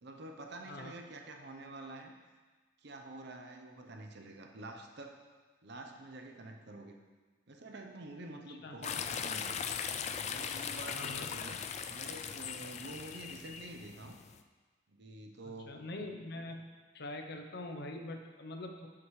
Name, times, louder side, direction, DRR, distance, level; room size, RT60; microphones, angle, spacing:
voice 1, 0.0-2.1 2.8-5.2 5.6-7.0 7.5-9.6 10.2-11.6 11.9-14.2 14.9-15.8, right 2 dB, 55° right, 4 dB, 0.8 m, -48 dB
voice 2, 0.7-1.0 8.5-8.8 10.9-11.4 15.4-16.6 16.9-18.9, left 2 dB, 55° left, 4 dB, 0.7 m, -44 dB
sound 1, 8.8-14.4, left 7 dB, 35° left, 0.3 m, -39 dB
11.5 x 5.9 x 3.2 m, 1.4 s
head